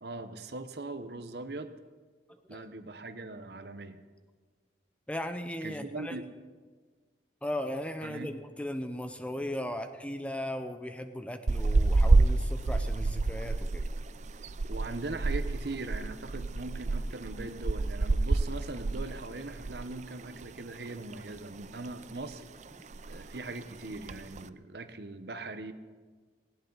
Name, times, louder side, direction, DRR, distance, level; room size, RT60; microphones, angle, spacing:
voice 1, 0.0-1.7 2.5-4.0 5.6-6.3 8.0-8.3 14.7-22.4 23.1-25.7, right 2 dB, 60° right, 10 dB, 0.9 m, -40 dB
voice 2, 5.1-6.2 7.4-13.9, left 1 dB, 5° left, 8 dB, 0.8 m, -37 dB
sound 1, 11.5-20.0 20.2-20.5 20.9-21.7 22.0-22.4 22.7-22.8 22.9-23.4 23.9-24.4, right 3 dB, 40° right, 0.5 m, -28 dB
19.0 x 17.5 x 4.0 m, 1.5 s
head